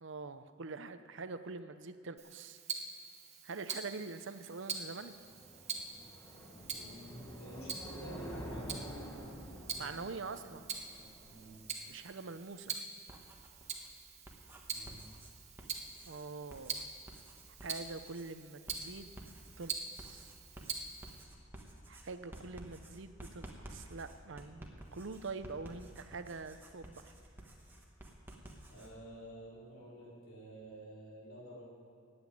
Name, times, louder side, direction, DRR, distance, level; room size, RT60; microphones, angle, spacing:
voice 1, 0.0-2.6 3.4-5.2 9.8-10.7 11.9-12.8 16.1-16.7 17.6-19.1 19.6-20.3 21.9-27.1, right 4 dB, 60° right, 11 dB, 0.7 m, -45 dB
Tick-tock, 2.2-21.2, right 5 dB, 35° right, 1.2 m, -45 dB
sound 1, 4.6-12.0, equal, 10° left, 1.6 m, -48 dB
voice 2, 6.6-8.9 11.3-11.7 14.7-15.0 28.7-31.6, right 1 dB, 85° left, -6 dB, 3.9 m, -50 dB
Writing, 10.7-12.3 12.9-28.9, right 1 dB, 10° right, 1.4 m, -53 dB
11.5 x 8.0 x 9.3 m, 2.6 s
head